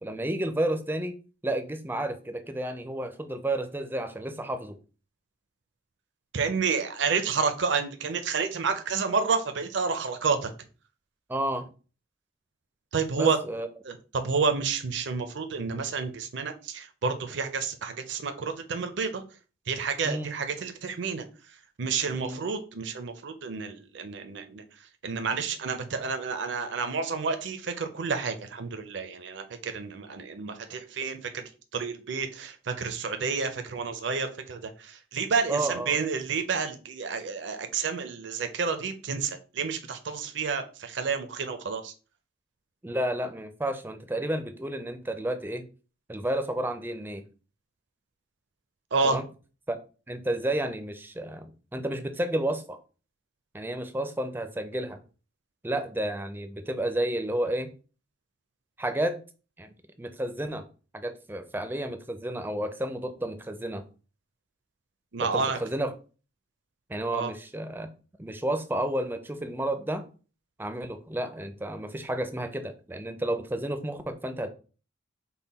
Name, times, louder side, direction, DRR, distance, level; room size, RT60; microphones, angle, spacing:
voice 1, 0.0-1.1 1.4-4.8 11.3-11.7 13.2-13.7 20.0-20.3 22.1-22.4 35.5-36.0 42.8-45.6 46.1-47.2 49.0-49.2 49.7-49.8 50.1-52.8 53.5-55.0 55.6-57.7 58.8-59.2 59.6-59.7 60.0-60.6 60.9-63.8 65.3-65.9 66.9-67.9 68.2-70.0 70.6-74.5, right 1 dB, 10° right, 8 dB, 0.4 m, -31 dB
voice 2, 6.3-10.5 12.9-13.4 13.9-19.2 19.7-21.2 21.8-24.6 25.0-41.9 48.9-49.2 65.1-65.6 67.1-67.3, right 5 dB, 65° right, 7 dB, 0.5 m, -30 dB
5.5 x 2.2 x 4.1 m, 0.36 s
head